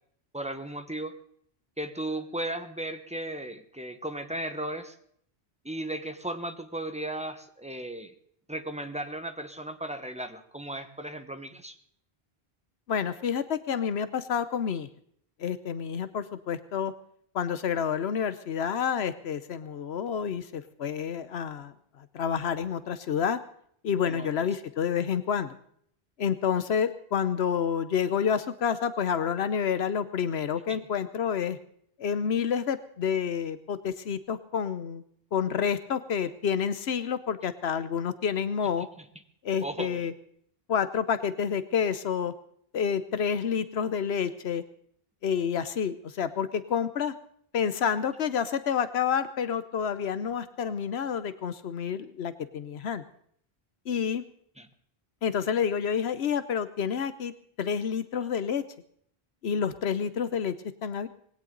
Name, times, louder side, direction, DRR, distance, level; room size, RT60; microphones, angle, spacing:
voice 1, 0.3-1.1 1.8-5.0 5.6-8.1 8.5-11.8 24.0-24.3 30.7-30.8 39.6-40.1 54.6-54.7, right 1 dB, 5° right, 8 dB, 1.2 m, -36 dB
voice 2, 12.9-14.9 15.4-16.9 17.3-23.4 23.8-25.6 26.2-31.6 32.0-35.0 35.3-38.9 39.4-40.1 40.7-42.3 42.7-44.6 45.2-47.1 47.5-53.0 53.9-54.2 55.2-57.3 57.6-58.6 59.4-60.5 60.8-61.1, left 7 dB, 85° left, 12 dB, 1.1 m, -29 dB
20.0 x 17.0 x 3.9 m, 0.64 s
omnidirectional pair, 1.0 m